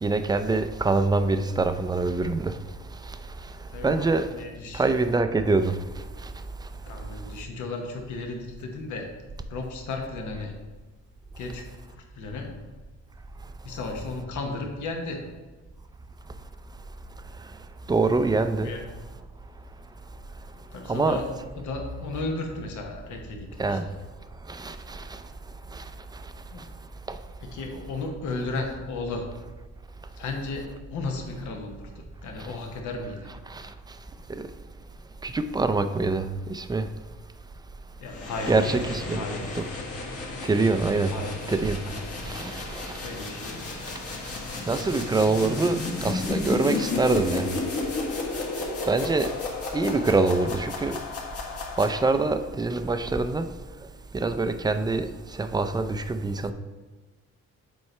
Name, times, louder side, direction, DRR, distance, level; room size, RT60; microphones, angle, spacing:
voice 1, 0.0-2.6 3.8-4.3 4.7-5.8 17.9-18.7 20.9-21.2 23.6-23.8 24.5-25.0 25.7-25.8 27.1-27.2 33.5-33.6 35.2-36.9 38.5-39.2 39.6-39.7 40.5-41.1 41.5-41.8 42.2-42.9 44.7-47.5 48.9-49.3 49.7-51.0 51.8-53.5 54.1-55.1 55.4-56.5, right 3 dB, 15° right, 0.4 m, -24 dB
voice 2, 3.7-4.8 6.9-9.1 9.5-10.5 11.4-12.6 13.6-15.2 18.6-18.8 20.7-21.3 21.6-24.0 26.5-26.7 27.4-29.3 30.2-31.9 32.2-33.3 38.0-39.5 41.1-41.4 41.9-42.4 43.0-43.6, left 3 dB, 75° left, 1.1 m, -34 dB
sound 1, 38.1-52.4, left 3 dB, 50° left, 1.6 m, -33 dB
7.5 x 4.5 x 3.3 m
cardioid pair, 90°, 30 cm